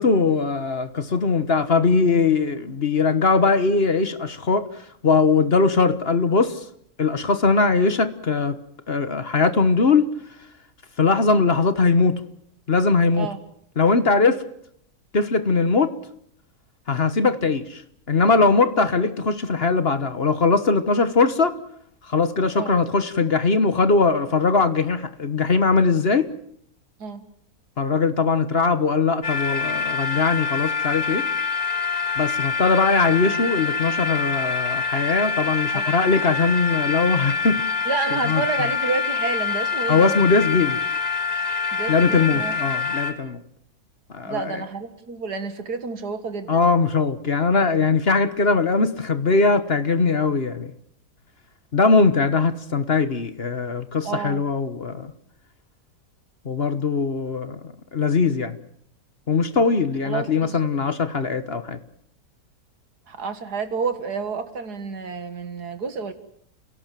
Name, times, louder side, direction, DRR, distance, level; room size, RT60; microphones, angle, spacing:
voice 1, 0.0-4.7 5.0-6.6 7.0-8.6 8.9-10.1 11.0-12.2 12.7-13.3 13.8-14.4 15.1-15.9 16.9-17.8 18.1-21.5 22.1-26.3 27.8-31.3 32.2-37.7 38.2-38.4 39.9-40.8 41.9-43.4 44.1-44.6 46.5-50.7 51.7-55.1 56.4-57.6 57.9-58.6 59.3-61.8, left 4 dB, 40° left, 1.4 m, -20 dB
sound 1, 29.2-43.1, left 5 dB, 25° left, 2.3 m, -25 dB
voice 2, 35.7-36.3 37.9-40.2 41.7-42.6 44.2-46.7 54.0-54.4 60.1-60.6 63.1-66.1, right 5 dB, 85° right, 2.4 m, -30 dB
30.0 x 17.5 x 7.6 m
omnidirectional pair, 1.7 m